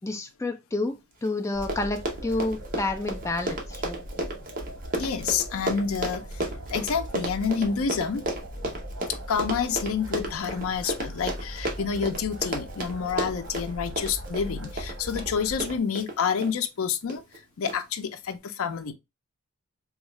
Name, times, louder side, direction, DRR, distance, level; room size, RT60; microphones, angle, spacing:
voice 1, 0.0-4.0, left 2 dB, 15° left, 0.3 m, -29 dB
Run, 1.2-1.3 1.5-16.5 17.1-17.4 17.7-17.8, right 1 dB, 40° right, 0.8 m, -33 dB
sound 1, 1.5-15.8, equal, 75° right, 1.0 m, -40 dB
voice 2, 4.9-8.2 9.3-17.2 17.6-18.9, left 6 dB, 80° left, 0.5 m, -28 dB
3.6 x 2.3 x 3.0 m
head